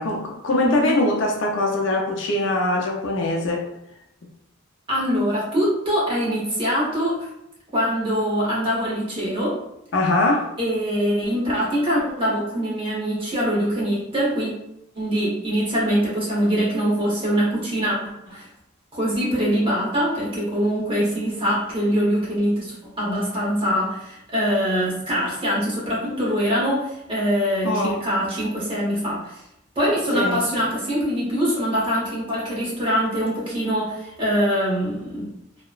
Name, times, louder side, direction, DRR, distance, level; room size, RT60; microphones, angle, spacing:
voice 1, 0.0-3.6 9.9-10.4 27.6-28.0 30.1-30.4, left 2 dB, 60° left, 0 dB, 0.5 m, -22 dB
voice 2, 4.9-7.3 7.7-9.6 10.6-14.5 14.9-18.0 18.3-18.5 18.9-29.4 29.8-35.3, equal, 25° right, -6 dB, 0.9 m, -23 dB
2.8 x 2.1 x 2.3 m, 0.78 s
head